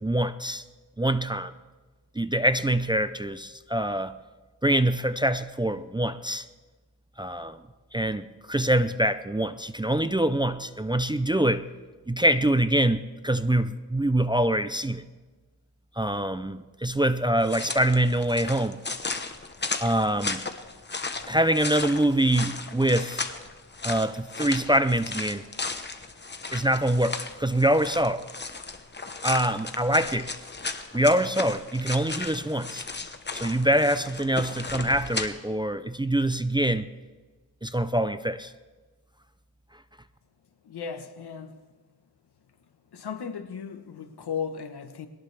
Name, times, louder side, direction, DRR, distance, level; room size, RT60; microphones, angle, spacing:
voice 1, 0.0-0.6 1.0-1.5 2.2-4.1 4.6-6.5 7.2-7.6 7.9-11.7 12.1-15.0 16.0-18.8 19.8-20.4 21.3-23.2 23.8-25.4 26.5-28.2 29.2-30.3 30.9-32.8 33.3-36.9 37.6-38.5, right 1 dB, 10° right, 0.4 m, -24 dB
sound 1, 17.4-35.3, left 3 dB, 25° left, 1.1 m, -35 dB
voice 2, 40.6-41.6 42.9-45.1, left 6 dB, 80° left, 1.3 m, -36 dB
21.5 x 18.0 x 3.4 m
wide cardioid pair, 95°, 39 cm